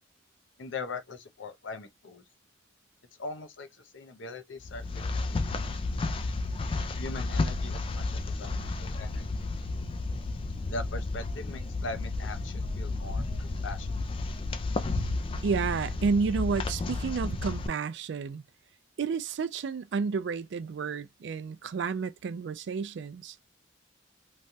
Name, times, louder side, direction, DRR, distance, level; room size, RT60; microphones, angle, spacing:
voice 1, 0.6-2.2 3.2-5.8 7.0-9.5 10.6-14.1, left 3 dB, 70° left, 0.6 m, -41 dB
sound 1, 4.6-17.7, left 3 dB, 25° left, 0.3 m, -32 dB
voice 2, 15.4-18.4 19.0-23.4, right 5 dB, 65° right, 0.3 m, -31 dB
3.1 x 2.3 x 2.6 m
head